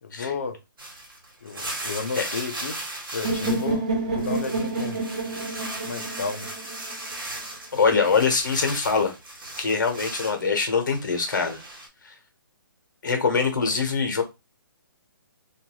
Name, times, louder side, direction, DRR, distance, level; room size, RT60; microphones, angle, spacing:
voice 1, 0.0-0.6 1.4-5.0 5.8-6.5 13.5-13.6, left 5 dB, 40° left, 0.4 m, -33 dB
sound 1, 0.8-3.8 4.1-10.4 10.9-11.9, right 1 dB, 75° right, 1.4 m, -37 dB
sound 2, 3.2-7.2, right 3 dB, 20° right, 0.4 m, -29 dB
voice 2, 7.7-9.1 9.6-11.6 12.0-12.1 13.0-14.2, left 5 dB, 60° left, 0.9 m, -23 dB
2.6 x 2.3 x 3.0 m
hypercardioid pair, 180°, 12 cm